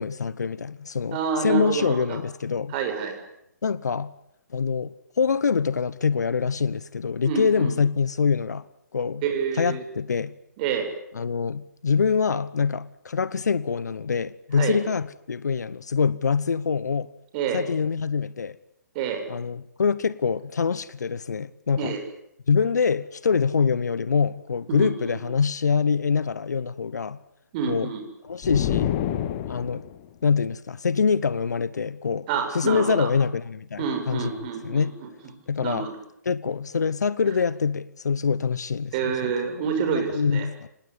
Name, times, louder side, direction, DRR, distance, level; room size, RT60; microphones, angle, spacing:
voice 1, 0.0-2.7 3.6-4.1 4.5-8.7 8.9-9.2 9.5-10.3 11.1-17.1 17.5-18.6 19.3-21.9 22.5-27.2 27.7-27.9 28.2-29.0 29.5-29.8 30.2-32.3 32.5-34.3 34.6-34.9 35.5-35.9 36.2-39.3 39.8-40.7, left 5 dB, 75° left, 1.0 m, -25 dB
voice 2, 1.1-2.2 2.7-3.2 7.2-7.7 9.2-9.8 10.6-10.9 14.5-14.8 17.3-17.6 18.9-19.2 21.8-22.0 24.7-25.2 27.5-28.0 32.3-33.1 33.8-34.9 35.6-35.9 38.9-40.5, right 7 dB, 35° right, 6.8 m, -28 dB
sound 1, 28.4-30.1, left 11 dB, 35° left, 2.0 m, -27 dB
25.5 x 19.5 x 9.9 m
hypercardioid pair, 140°, 9 cm